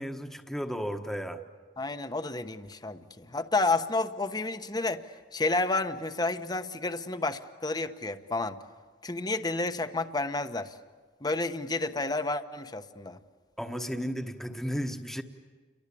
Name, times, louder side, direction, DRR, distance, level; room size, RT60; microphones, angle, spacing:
voice 1, 0.0-1.4 13.6-15.2, equal, ahead, 4 dB, 1.3 m, -34 dB
voice 2, 1.8-5.0 5.3-8.6 9.0-10.7 11.2-13.2, left 2 dB, 25° left, 9 dB, 1.1 m, -30 dB
29.5 x 23.0 x 8.6 m, 1.5 s
head